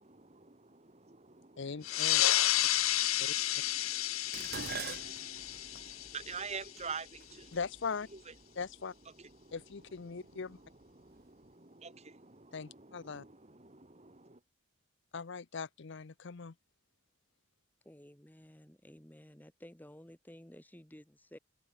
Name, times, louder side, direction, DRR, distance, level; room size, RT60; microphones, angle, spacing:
voice 1, 0.0-7.6 8.1-8.6 9.1-9.6 10.1-14.4, right 5 dB, 30° right, 2.2 m, -49 dB
voice 2, 1.6-2.2 3.2-3.3 7.5-8.1 8.6-8.9 9.5-10.6 12.5-13.2 15.1-16.5, left 5 dB, 60° left, 0.6 m, -40 dB
sound 1, 1.8-6.9, left 14 dB, 85° left, 1.1 m, -31 dB
Dishes pots and pans, 4.3-8.7 9.6-10.0 10.4-11.2 11.5-11.6, right 6 dB, 50° right, 2.0 m, -46 dB
voice 3, 17.8-21.4, equal, 10° left, 1.3 m, -54 dB
head